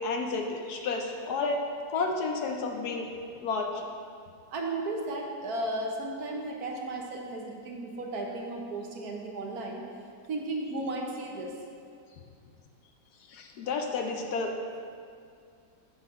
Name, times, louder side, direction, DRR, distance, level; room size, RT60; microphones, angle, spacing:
voice 1, 0.0-1.6 1.9-3.1 3.4-3.9 13.3-14.5, left 3 dB, 70° left, 3 dB, 1.1 m, -31 dB
voice 2, 4.5-9.9 10.3-11.5, right 2 dB, 65° right, 0 dB, 1.3 m, -34 dB
8.4 x 4.3 x 6.1 m, 2.3 s
omnidirectional pair, 1.9 m